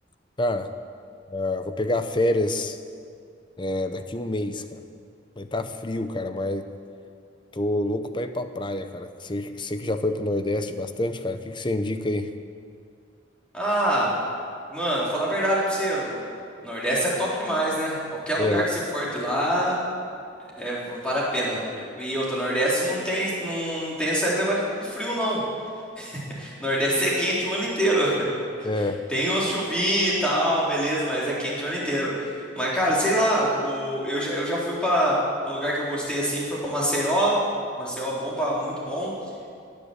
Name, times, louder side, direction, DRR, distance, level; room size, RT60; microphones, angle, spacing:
voice 1, 0.4-0.7 1.3-2.8 3.6-4.8 5.4-6.7 7.5-12.3 18.4-18.7 28.6-29.1, left 1 dB, 25° left, 9 dB, 0.8 m, -27 dB
voice 2, 13.5-14.1 14.7-16.2 16.6-18.0 18.3-19.8 20.6-25.4 26.0-28.1 29.1-35.1 35.5-37.4 37.8-39.1, equal, 5° left, -6 dB, 4.1 m, -25 dB
16.5 x 10.5 x 8.3 m, 2.4 s
head